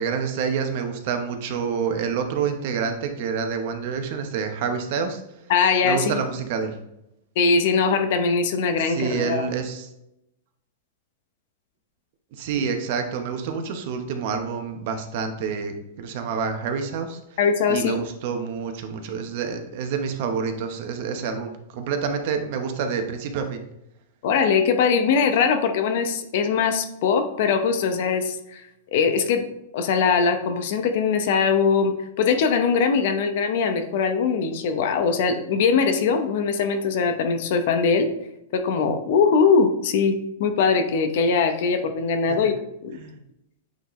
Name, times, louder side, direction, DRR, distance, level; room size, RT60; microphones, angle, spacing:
voice 1, 0.0-5.2 5.8-6.7 8.8-9.9 12.4-17.2 17.7-23.6 42.3-42.5 43.0-43.1, right 6 dB, 45° right, 6 dB, 0.9 m, -28 dB
voice 2, 5.5-6.2 7.4-9.4 17.4-18.0 24.2-28.6 28.9-29.4 29.7-38.1 38.5-42.5 42.8-43.0, left 5 dB, 50° left, 7 dB, 0.8 m, -21 dB
8.4 x 4.0 x 3.1 m, 0.83 s
supercardioid pair, 160°, 0 cm